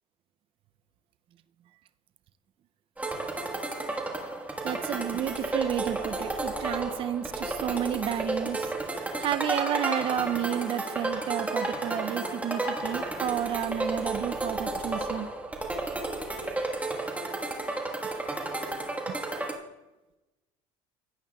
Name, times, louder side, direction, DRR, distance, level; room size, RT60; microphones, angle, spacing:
sound 1, 3.0-19.5, right 2 dB, 10° right, 1.4 m, -32 dB
voice 1, 4.6-8.7 9.2-15.3 19.1-19.2, right 10 dB, 40° right, 11 dB, 0.5 m, -31 dB
16.5 x 9.0 x 2.3 m, 1.0 s
cardioid pair, 125°, 14 cm